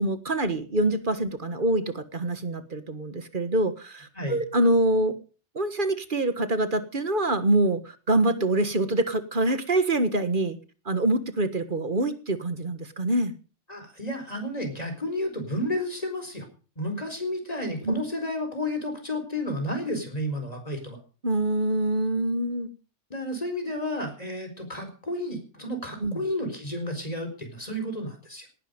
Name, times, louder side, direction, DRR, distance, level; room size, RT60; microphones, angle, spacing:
voice 1, 0.0-5.2 5.6-10.6 10.9-13.3 17.9-18.0 21.2-22.7 26.0-26.2, right 1 dB, 45° right, 11 dB, 1.7 m, -25 dB
voice 2, 13.7-16.5 16.8-21.0 23.1-28.5, left 1 dB, 35° left, 5 dB, 4.6 m, -31 dB
18.5 x 11.5 x 5.2 m, 0.37 s
omnidirectional pair, 1.2 m